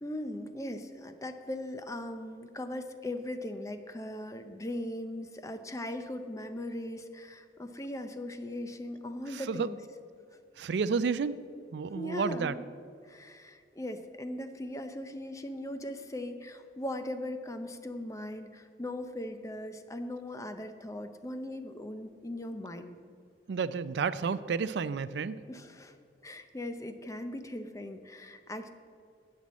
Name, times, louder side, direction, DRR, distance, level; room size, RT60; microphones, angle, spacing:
voice 1, 0.0-9.8 10.3-10.4 11.9-12.6 13.0-23.0 25.5-26.0 26.2-28.7, left 1 dB, 20° left, 8 dB, 0.6 m, -39 dB
voice 2, 9.3-9.7 10.6-11.4 11.7-12.5 23.5-25.4, right 5 dB, 75° right, 15 dB, 0.4 m, -31 dB
13.5 x 8.7 x 4.2 m, 2.2 s
head